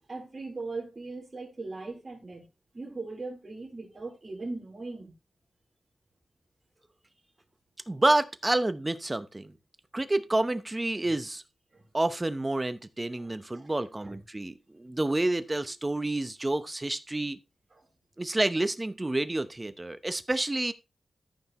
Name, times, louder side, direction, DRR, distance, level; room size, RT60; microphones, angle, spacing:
voice 1, 0.1-2.5 2.7-5.2 11.7-11.8 13.2-13.7 14.0-14.2, right 3 dB, 35° right, 3.7 m, -39 dB
voice 2, 7.9-9.5 9.9-11.4 11.9-17.4 18.2-20.7, right 2 dB, 20° right, 0.8 m, -29 dB
14.0 x 5.8 x 3.0 m
wide cardioid pair, 85°, 0 cm